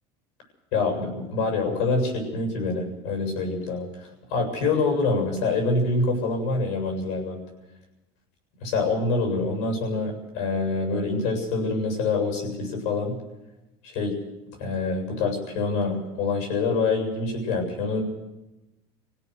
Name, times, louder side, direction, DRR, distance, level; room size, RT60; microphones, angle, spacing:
voice 1, 0.7-3.9 4.3-7.4 8.6-13.2 13.8-14.2 14.6-18.0, left 3 dB, 85° left, 4 dB, 7.5 m, -26 dB
27.5 x 17.0 x 6.7 m, 0.99 s
cardioid pair, 135°, 13 cm